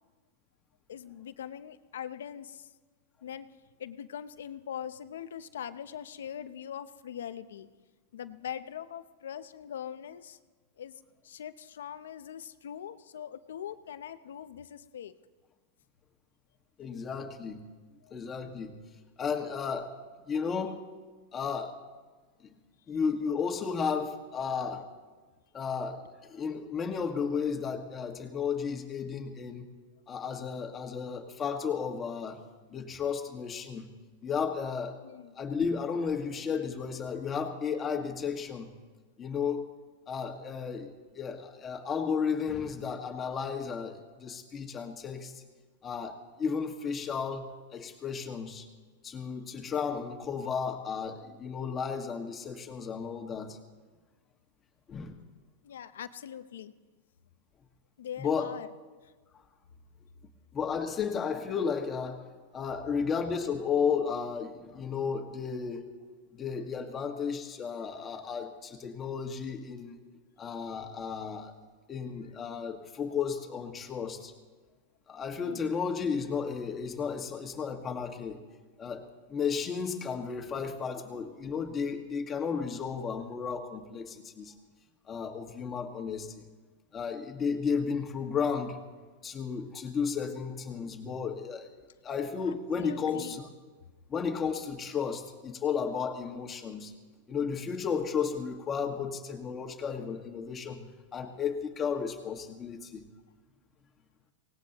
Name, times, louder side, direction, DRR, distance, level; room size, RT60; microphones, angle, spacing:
voice 1, 0.9-2.7 3.2-3.5 3.8-7.7 8.1-10.4 10.8-10.9 11.2-15.1 18.0-18.1 35.0-35.3 55.6-56.7 58.0-58.7 59.0-59.1 75.4-75.7 92.4-93.4, left 9 dB, 90° left, 12 dB, 0.8 m, -42 dB
voice 2, 16.8-17.6 18.1-18.8 19.2-20.0 20.3-20.8 21.3-21.8 22.4-22.5 22.9-24.9 25.5-29.6 30.1-32.4 32.7-33.9 34.2-35.0 35.4-38.7 39.2-39.7 40.1-45.3 45.8-48.7 49.0-53.6 54.9-55.2 58.2-58.5 60.5-65.9 66.3-70.0 70.4-71.5 71.9-74.3 75.1-78.4 78.8-84.5 85.1-86.4 86.9-88.8 89.2-91.7 92.0-93.5 94.1-96.9 97.3-100.9 101.1-103.1, left 6 dB, 20° left, 3 dB, 1.8 m, -33 dB
24.0 x 18.5 x 3.0 m, 1.4 s
supercardioid pair, 135°, 0 cm